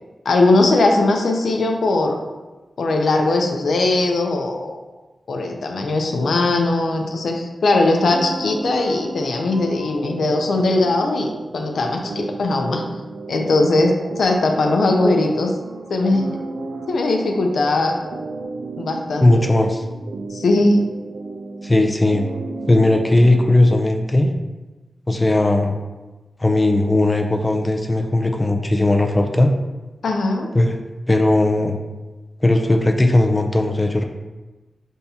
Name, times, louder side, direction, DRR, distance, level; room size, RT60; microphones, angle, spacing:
voice 1, 0.2-2.2 2.8-4.8 5.3-12.8 13.3-15.5 15.9-16.3 16.9-18.0 18.8-19.3 20.3-20.8 30.0-30.5, left 2 dB, 80° left, 2 dB, 0.5 m, -19 dB
sound 1, 8.0-24.0, right 3 dB, 85° right, 0.4 m, -34 dB
voice 2, 19.2-19.8 21.6-22.2 22.7-24.3 25.1-25.8 26.4-29.5 30.5-30.8 31.1-31.8 32.4-34.0, left 2 dB, 20° left, 4 dB, 0.4 m, -17 dB
5.5 x 3.5 x 2.8 m, 1.2 s
wide cardioid pair, 135°, 0 cm